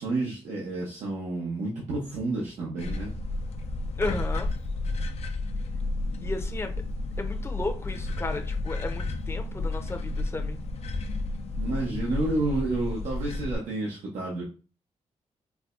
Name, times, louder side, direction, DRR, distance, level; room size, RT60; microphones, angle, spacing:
voice 1, 0.0-3.1 11.6-14.4, right 2 dB, 90° right, -4 dB, 0.9 m, -30 dB
sound 1, 2.8-13.5, left 2 dB, 65° left, 0.5 m, -31 dB
voice 2, 4.0-4.5 6.2-6.7 7.2-10.6, left 2 dB, 20° left, 5 dB, 0.6 m, -34 dB
4.6 x 2.2 x 2.5 m, 0.35 s
cardioid pair, 95°, 12 cm